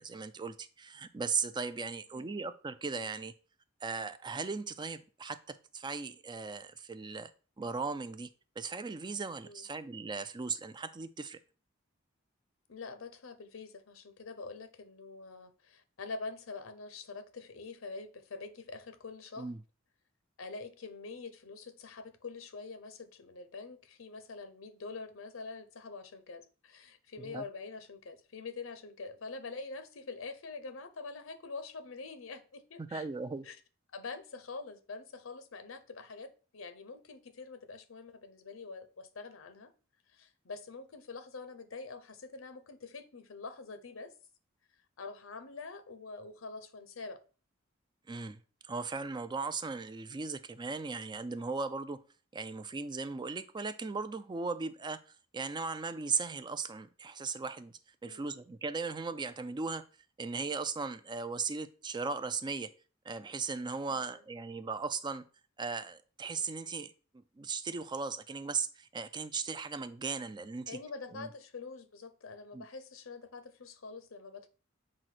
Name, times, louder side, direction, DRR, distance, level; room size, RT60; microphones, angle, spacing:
voice 1, 0.0-3.3 3.8-7.3 7.6-8.3 8.6-11.4 19.4-19.6 27.2-27.4 32.8-33.4 48.1-52.0 52.3-55.0 55.3-59.8 60.2-62.7 63.0-65.3 65.6-66.9 67.4-70.8 71.1-71.3 72.5-72.6, right 4 dB, 20° right, 0.4 m, -37 dB
voice 2, 12.7-19.5 20.4-33.1 33.4-33.6 33.9-39.7 40.1-44.1 45.0-47.2 58.0-58.4 63.9-64.1 70.7-74.5, left 4 dB, 70° left, 0.8 m, -45 dB
7.5 x 2.6 x 5.8 m
head